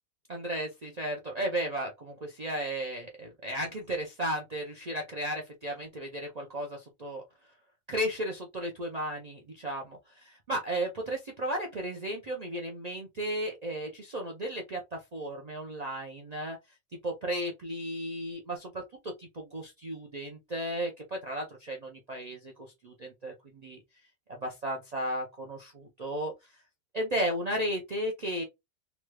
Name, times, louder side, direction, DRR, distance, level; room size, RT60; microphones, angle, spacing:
voice 1, 0.3-7.2 7.9-16.6 17.0-23.8 24.3-26.3 26.9-28.4, right 1 dB, 75° right, 0.3 m, -34 dB
3.1 x 2.3 x 3.2 m
omnidirectional pair, 1.6 m